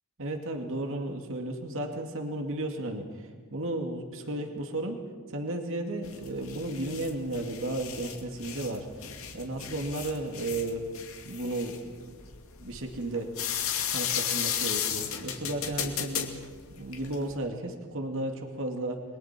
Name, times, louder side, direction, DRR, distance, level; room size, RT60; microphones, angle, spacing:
voice 1, 0.2-5.0 5.3-8.9 9.3-10.9 11.2-12.2 12.6-13.3 13.9-16.3 16.7-19.0, right 1 dB, 65° right, 3 dB, 2.4 m, -34 dB
sound 1, 6.0-17.3, left 8 dB, 70° left, 2.4 m, -35 dB
30.0 x 22.5 x 4.5 m, 1.5 s
head